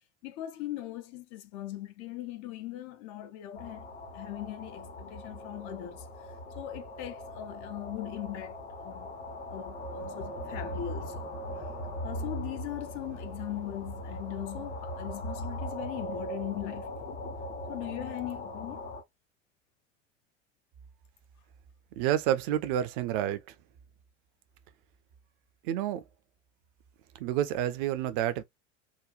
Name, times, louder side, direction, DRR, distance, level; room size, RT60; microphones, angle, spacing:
voice 1, 0.2-3.9 4.1-9.1 9.5-11.7 12.0-16.9 17.7-18.9, left 13 dB, 40° left, 0.5 m, -40 dB
sound 1, 3.5-19.0, left 1 dB, 65° left, 1.1 m, -40 dB
sound 2, 9.0-14.0, right 2 dB, 90° right, 1.1 m, -54 dB
voice 2, 22.0-23.4 25.6-26.0 27.2-28.4, right 11 dB, 45° right, 0.6 m, -29 dB
3.7 x 2.3 x 3.0 m
figure-of-eight pair, 75°, 36 cm